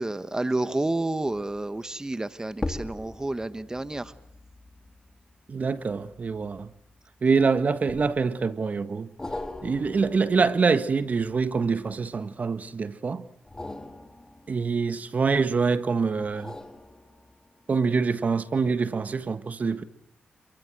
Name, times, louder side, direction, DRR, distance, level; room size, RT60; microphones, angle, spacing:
voice 1, 0.0-4.1, right 2 dB, 20° right, 1.3 m, -30 dB
sound 1, 1.3-1.7 2.5-7.2 7.9-8.5 9.2-12.2 13.4-15.5 16.2-17.6 18.1-18.2, left 2 dB, 20° left, 2.5 m, -41 dB
voice 2, 5.5-6.7 7.2-9.1 9.6-13.3 14.5-16.5 17.7-19.8, right 5 dB, 50° right, 1.5 m, -25 dB
28.5 x 23.0 x 7.9 m
cardioid pair, 60°, 3 cm